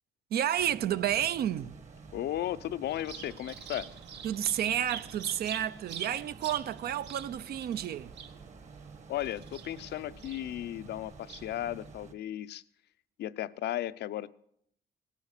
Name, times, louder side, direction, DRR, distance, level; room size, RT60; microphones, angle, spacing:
voice 1, 0.3-1.8 4.2-8.1, right 11 dB, 65° right, 0.5 m, -31 dB
sound 1, 0.6-12.1, right 4 dB, 40° right, 1.4 m, -50 dB
voice 2, 2.1-3.9 9.1-12.6 13.2-14.3, left 12 dB, 75° left, 0.6 m, -35 dB
Bird vocalization bird call bird song, 2.9-11.9, right 8 dB, 80° right, 1.5 m, -46 dB
17.5 x 11.5 x 6.6 m
cardioid pair, 140°, 18 cm